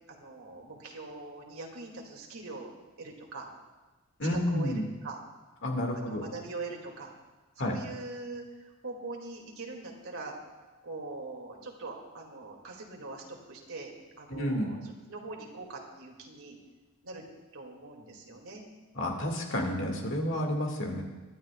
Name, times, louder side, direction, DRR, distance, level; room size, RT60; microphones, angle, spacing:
voice 1, 0.1-2.7 3.0-3.5 4.3-5.2 5.9-7.1 7.6-10.3 10.8-13.9 14.2-16.6 17.0-17.2 17.5-18.6, right 3 dB, 90° right, 0 dB, 2.5 m, -42 dB
voice 2, 4.2-4.9 5.6-6.2 7.6-7.8 14.3-14.7 19.0-21.0, left 1 dB, 60° left, 1 dB, 2.2 m, -30 dB
22.5 x 12.5 x 2.4 m, 1.2 s
head